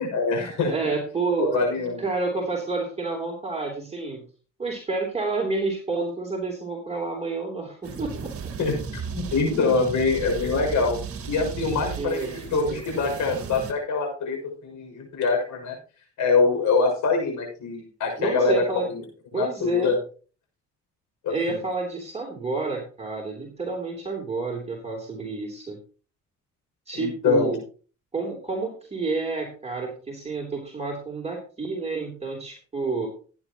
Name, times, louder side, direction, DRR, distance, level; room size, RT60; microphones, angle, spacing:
voice 1, 0.0-0.7 1.5-2.0 8.6-11.0 11.2-15.7 16.2-19.0 19.3-20.0 21.2-21.6 26.9-27.5, left 4 dB, 80° left, 2 dB, 6.3 m, -24 dB
voice 2, 0.7-1.7 2.0-4.2 4.6-8.3 8.9-9.0 11.7-13.1 18.2-18.9 19.3-19.9 21.3-25.8 26.9-27.6 28.1-33.1, right 3 dB, 20° right, -1 dB, 3.4 m, -29 dB
sound 1, 7.8-13.7, right 6 dB, 50° right, 1.9 m, -35 dB
16.0 x 9.7 x 3.0 m, 0.38 s
cardioid pair, 90°, 30 cm